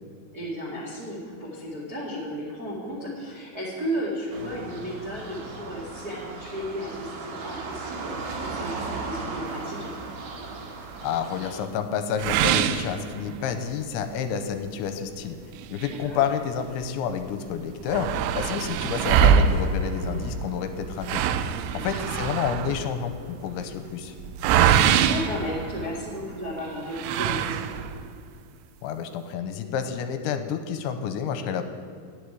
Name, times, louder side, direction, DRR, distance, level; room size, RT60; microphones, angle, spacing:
voice 1, 0.3-9.9 15.9-16.2 21.7-22.0 25.0-27.7, equal, 40° right, -5 dB, 1.3 m, -34 dB
sound 1, 4.3-11.7, right 4 dB, 60° right, 2.9 m, -36 dB
voice 2, 11.0-15.4 15.7-21.2 21.8-23.1 23.4-24.1 28.8-31.7, left 7 dB, 80° left, 8 dB, 3.0 m, -29 dB
sound 2, 12.2-13.7 14.1-14.2 14.6-14.7 15.5-16.9 17.2-17.3 17.5-26.2 26.9-28.1, right 8 dB, 85° right, 3.0 m, -24 dB
11.5 x 6.9 x 9.6 m, 2.1 s
omnidirectional pair, 5.4 m